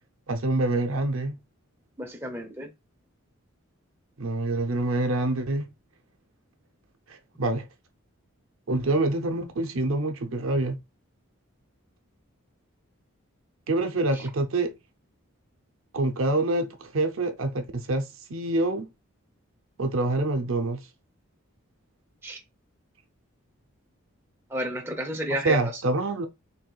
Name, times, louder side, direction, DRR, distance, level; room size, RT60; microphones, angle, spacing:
voice 1, 0.3-1.4 4.2-5.7 7.1-7.7 8.7-10.8 13.7-14.7 15.9-18.9 19.8-20.9 25.4-26.3, right 2 dB, 70° right, 0.6 m, -26 dB
voice 2, 2.0-2.7 14.1-14.3 22.2-22.4 24.5-25.8, equal, 10° right, 0.7 m, -32 dB
4.4 x 3.4 x 2.3 m
head